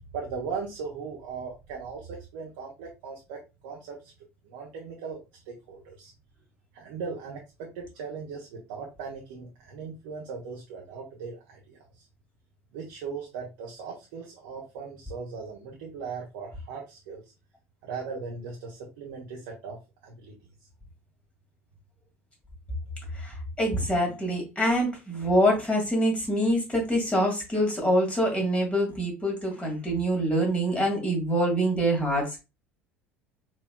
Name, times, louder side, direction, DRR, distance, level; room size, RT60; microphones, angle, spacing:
voice 1, 0.0-4.1 4.4-6.1 6.7-12.1 12.7-17.2 17.8-19.8 20.0-20.3, right 5 dB, 60° right, -1 dB, 0.9 m, -38 dB
voice 2, 23.2-32.4, equal, 15° left, 0 dB, 2.0 m, -25 dB
4.4 x 3.3 x 2.3 m, 0.26 s
figure-of-eight pair, 65°, 7 cm